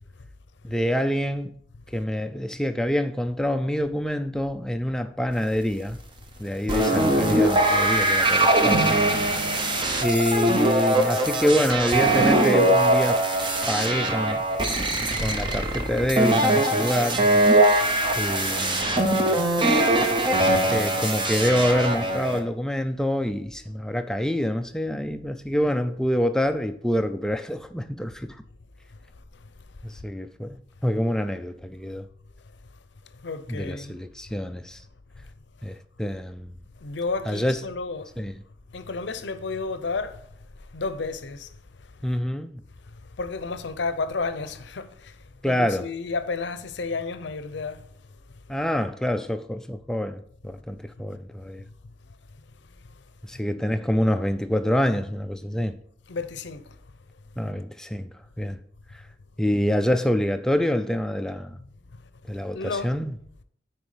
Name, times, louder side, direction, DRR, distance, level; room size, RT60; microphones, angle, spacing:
voice 1, 0.6-1.5 1.9-6.0 6.4-8.9 10.0-13.2 13.7-14.5 15.2-17.3 18.1-19.3 20.7-28.4 29.8-32.1 33.5-34.8 35.6-36.6 37.3-37.6 38.2-38.4 42.0-42.6 45.4-45.9 48.5-51.6 53.2-55.8 57.4-58.1 58.4-58.6 59.4-61.6 62.3-63.1, equal, 5° left, 0.4 m, -26 dB
sound 1, 6.7-22.4, right 1 dB, 25° right, 0.9 m, -21 dB
voice 2, 17.8-18.3 19.1-20.9 33.2-34.0 36.8-38.1 38.7-40.3 40.7-41.5 43.2-45.1 45.4-47.8 56.1-56.6 61.5-61.7 62.5-62.9, left 4 dB, 70° left, 0.6 m, -32 dB
9.3 x 4.5 x 4.9 m
head